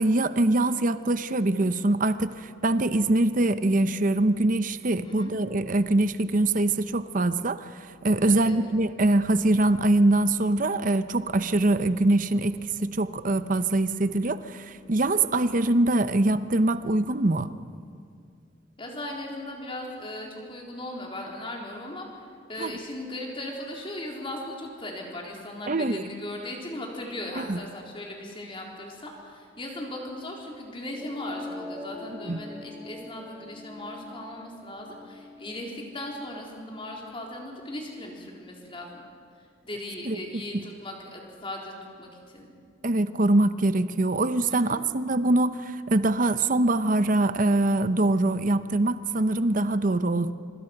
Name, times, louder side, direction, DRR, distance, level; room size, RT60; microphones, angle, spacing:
voice 1, 0.0-7.7 8.0-17.5 22.6-22.7 25.7-26.0 27.4-27.6 32.2-32.4 40.1-40.2 42.8-50.3, right 2 dB, 40° right, 12 dB, 0.8 m, -23 dB
voice 2, 8.2-8.7 18.8-39.0 39.6-42.5 44.5-44.8, left 1 dB, 25° left, 0 dB, 3.8 m, -38 dB
sound 1, 30.7-36.7, left 2 dB, 10° right, 2.9 m, -43 dB
25.5 x 25.0 x 6.0 m, 2.2 s
head